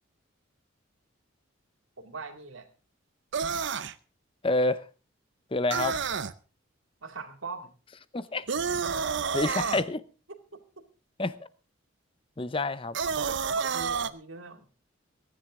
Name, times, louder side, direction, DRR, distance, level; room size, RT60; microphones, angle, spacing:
voice 1, 2.0-2.7 7.0-7.7 10.3-10.8 13.0-14.7, right 4 dB, 75° right, 2.3 m, -41 dB
sound 1, 3.3-3.9 5.7-6.3 8.5-9.8 12.9-14.1, right 6 dB, 60° right, 0.7 m, -29 dB
voice 2, 4.4-4.8 5.5-6.0 8.1-8.5 9.3-10.0 11.2-11.4 12.4-13.0, left 2 dB, 25° left, 0.7 m, -27 dB
23.0 x 10.5 x 3.6 m
head